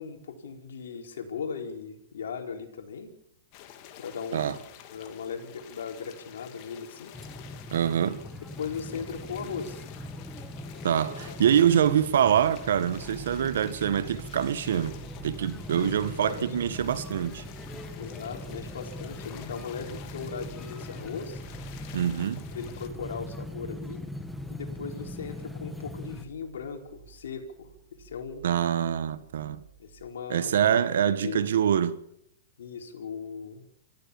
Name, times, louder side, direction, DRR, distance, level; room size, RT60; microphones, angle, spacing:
voice 1, 0.0-3.1 4.0-4.6 4.9-7.1 8.6-9.8 11.2-11.8 15.7-16.5 18.0-21.4 22.5-24.0 24.5-27.7 28.0-28.4 29.8-31.5 32.6-33.7, left 6 dB, 80° left, 4.6 m, -38 dB
sound 1, 3.5-22.9, left 10 dB, 45° left, 3.0 m, -49 dB
sound 2, 7.1-26.3, left 1 dB, 5° left, 2.0 m, -41 dB
voice 2, 7.7-8.2 10.8-15.0 15.2-17.4 21.9-22.4 28.4-29.6 30.3-32.0, right 9 dB, 75° right, 1.7 m, -25 dB
sound 3, 11.9-30.1, right 11 dB, 45° right, 4.3 m, -52 dB
25.0 x 15.0 x 7.2 m
hypercardioid pair, 130°, 0 cm